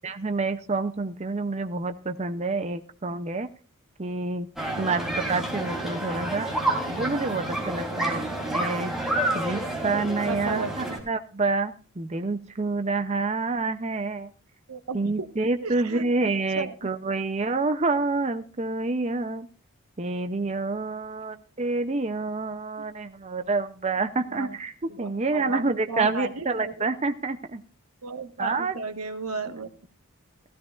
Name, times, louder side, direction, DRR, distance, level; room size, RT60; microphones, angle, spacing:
voice 1, 0.0-3.5 4.0-4.5 4.8-6.5 6.9-14.3 14.9-19.5 20.0-24.7 25.0-27.6 28.4-28.8, right 3 dB, 30° right, 9 dB, 0.6 m, -28 dB
sound 1, 4.6-11.0, right 1 dB, ahead, 3.3 m, -29 dB
voice 2, 10.2-11.0 14.7-15.3 15.6-16.7 17.1-17.2 22.8-22.9 24.3-24.6 24.9-26.9 28.0-29.7, right 4 dB, 85° right, 7 dB, 1.4 m, -35 dB
15.5 x 15.5 x 2.5 m, 0.38 s
head